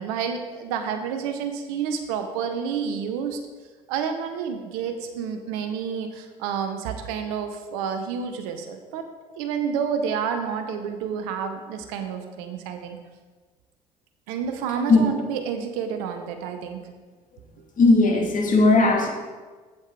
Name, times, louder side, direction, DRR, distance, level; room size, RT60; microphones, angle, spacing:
voice 1, 0.0-3.4 3.9-9.1 9.4-13.0 14.3-16.8, right 7 dB, 80° right, 6 dB, 0.8 m, -29 dB
voice 2, 17.8-19.1, left 3 dB, 45° left, 0 dB, 2.2 m, -17 dB
7.6 x 7.5 x 4.7 m, 1.4 s
hypercardioid pair, 60°, 18 cm